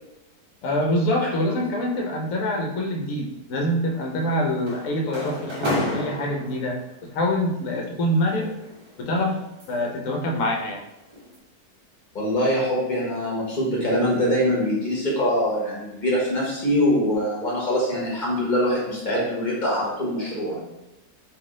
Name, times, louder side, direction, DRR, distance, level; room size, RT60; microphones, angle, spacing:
voice 1, 0.6-8.5 9.0-9.4 9.7-10.8, left 1 dB, 70° left, 1 dB, 1.0 m, -25 dB
sound 1, 4.0-6.9 8.1-10.0 10.4-10.7 11.1-11.4, left 1 dB, 40° right, 0.4 m, -32 dB
voice 2, 12.1-20.6, equal, 35° left, -5 dB, 1.2 m, -23 dB
3.5 x 2.6 x 3.6 m, 0.93 s
omnidirectional pair, 1.6 m